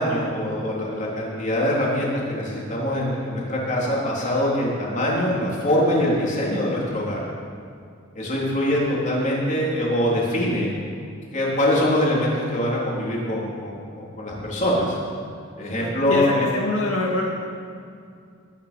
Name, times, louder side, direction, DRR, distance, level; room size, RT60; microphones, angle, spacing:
voice 1, 0.0-7.2 8.1-10.7 11.3-15.0 15.6-16.4, left 1 dB, 35° left, -4 dB, 3.6 m, -23 dB
voice 2, 15.6-17.2, left 1 dB, 75° left, -2 dB, 2.0 m, -26 dB
20.5 x 10.0 x 5.3 m, 2.3 s
head